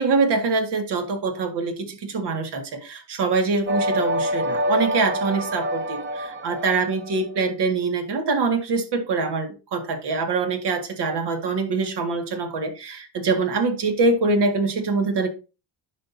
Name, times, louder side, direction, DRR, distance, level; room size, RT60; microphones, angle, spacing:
voice 1, 0.0-15.3, right 4 dB, 70° right, 2.1 m, -24 dB
sound 1, 3.7-7.3, equal, 25° right, 1.1 m, -26 dB
10.5 x 5.7 x 2.8 m
cardioid pair, 125°, 43 cm